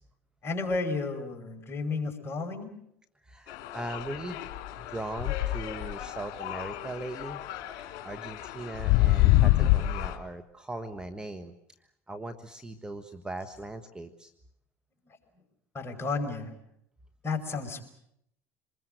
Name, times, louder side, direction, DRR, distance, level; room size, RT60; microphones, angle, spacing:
voice 1, 0.4-2.7 15.7-16.5 17.2-17.9, left 3 dB, 30° left, 5 dB, 5.1 m, -32 dB
voice 2, 3.2-4.5 4.8-7.4 8.0-11.5 12.1-14.3, right 2 dB, 10° right, 7 dB, 1.6 m, -39 dB
sound 1, 3.5-10.2, left 16 dB, 60° left, 3.2 m, -27 dB
26.0 x 21.0 x 7.9 m, 0.74 s
hypercardioid pair, 85°, 8 cm